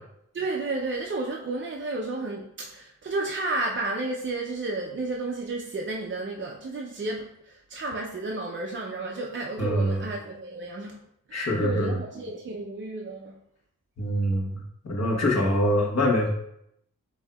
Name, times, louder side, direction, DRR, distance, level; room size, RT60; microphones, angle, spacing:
voice 1, 0.3-11.0 11.3-13.4 15.3-15.5, right 2 dB, 35° right, 0 dB, 0.4 m, -32 dB
voice 2, 9.6-10.0 11.3-11.9 14.0-16.3, equal, 50° left, -1 dB, 1.1 m, -24 dB
7.5 x 2.7 x 2.2 m, 0.74 s
wide cardioid pair, 110°, 33 cm